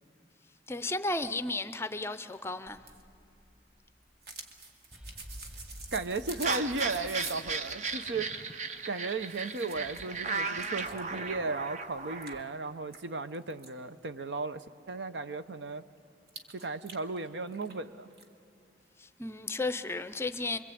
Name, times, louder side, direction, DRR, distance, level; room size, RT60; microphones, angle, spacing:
voice 1, 0.7-2.8 19.0-20.6, left 2 dB, 15° left, 0.5 m, -34 dB
sound 1, 2.7-7.6 8.8-8.9 9.2-10.1 10.5-11.1 11.6-11.7 12.2-13.7 16.3-17.8 18.1-18.2, right 4 dB, 65° right, 1.7 m, -47 dB
sound 2, 4.9-8.7, equal, 10° right, 6.1 m, -50 dB
voice 2, 5.9-8.3 8.9-15.8 16.5-18.1, right 3 dB, 85° right, 0.8 m, -35 dB
sound 3, 6.4-12.4, right 4 dB, 40° right, 0.8 m, -36 dB
26.0 x 23.0 x 8.5 m
head